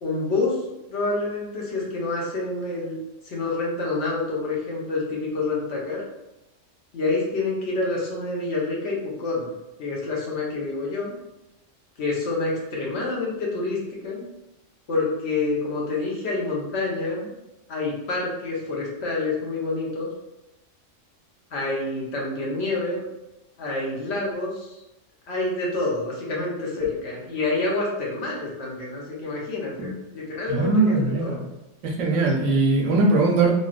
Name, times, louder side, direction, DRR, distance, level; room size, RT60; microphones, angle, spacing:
voice 1, 0.0-0.6 0.9-3.0 3.2-6.1 6.9-9.5 9.8-11.1 12.0-14.2 14.9-17.3 17.7-20.1 21.5-23.0 23.6-24.8 25.3-31.4, left 3 dB, 60° left, -3 dB, 1.0 m, -27 dB
voice 2, 30.5-31.4 31.8-33.5, right 3 dB, 85° right, -1 dB, 1.0 m, -20 dB
3.0 x 2.7 x 2.3 m, 0.94 s
omnidirectional pair, 1.3 m